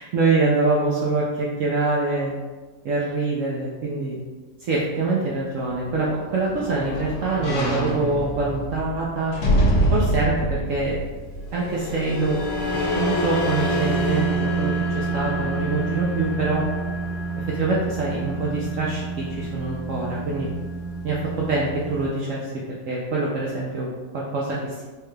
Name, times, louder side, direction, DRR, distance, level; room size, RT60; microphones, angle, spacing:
voice 1, 0.0-2.3 2.8-4.2 4.6-9.4 9.9-11.0 11.5-12.4 12.9-16.7 17.4-20.5 21.0-22.5 22.9-24.8, right 3 dB, 90° right, -5 dB, 0.6 m, -25 dB
sound 1, 5.7-12.0 12.5-12.6, right 1 dB, 85° left, 1.5 m, -25 dB
sound 2, 11.4-22.1, right 2 dB, 65° left, 1.4 m, -27 dB
4.6 x 2.3 x 3.2 m, 1.4 s
omnidirectional pair, 1.9 m